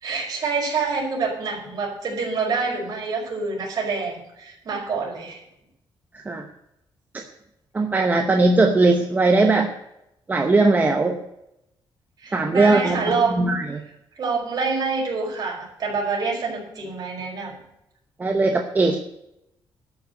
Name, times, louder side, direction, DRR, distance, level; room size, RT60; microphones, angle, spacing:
voice 1, 0.0-5.4 12.2-13.6 14.2-17.6, right 4 dB, 45° right, -1 dB, 5.2 m, -26 dB
voice 2, 7.7-9.7 10.3-11.2 12.3-13.8 18.2-19.0, right 3 dB, 20° right, 4 dB, 0.9 m, -19 dB
12.5 x 6.7 x 8.0 m, 0.82 s
wide cardioid pair, 175°, 9 cm